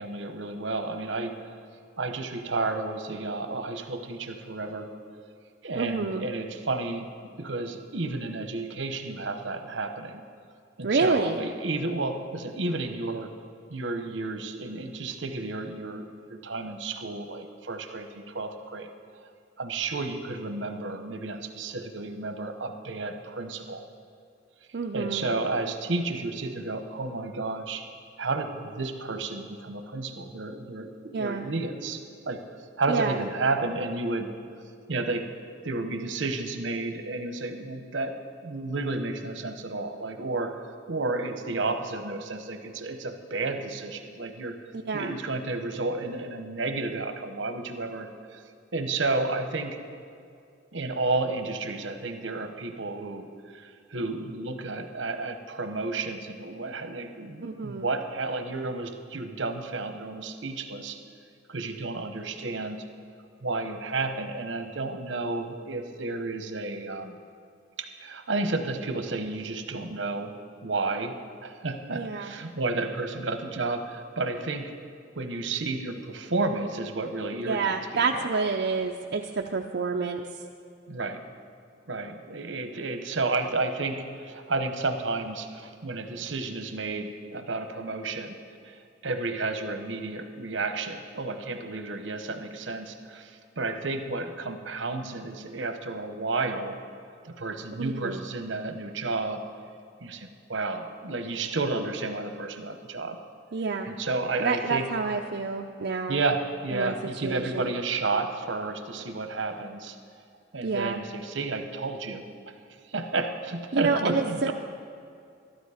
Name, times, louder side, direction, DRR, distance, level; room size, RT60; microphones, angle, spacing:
voice 1, 0.0-1.6 2.0-4.9 5.6-7.1 7.4-10.2 10.8-13.4 13.7-18.9 19.6-23.9 24.9-27.8 28.2-32.4 32.8-34.3 34.9-35.3 35.6-48.4 48.7-49.8 50.7-61.0 61.5-62.8 63.4-67.2 67.8-70.4 70.6-74.7 75.2-78.3 80.9-81.3 81.9-88.4 88.6-96.8 97.2-99.5 100.0-103.2 103.9-104.9 106.1-110.0 110.5-112.3 112.9-114.5, right 3 dB, 75° right, 7 dB, 1.0 m, -32 dB
voice 2, 5.8-6.3 10.8-11.4 24.7-25.3 31.1-31.5 32.9-33.2 44.9-45.2 57.4-57.9 71.9-72.3 77.5-80.2 97.8-98.2 103.5-103.9 104.4-106.2 106.7-106.9 107.2-107.7 110.6-111.0 113.7-114.5, right 4 dB, 60° right, 1 dB, 0.5 m, -28 dB
13.0 x 12.0 x 5.0 m, 2.4 s
head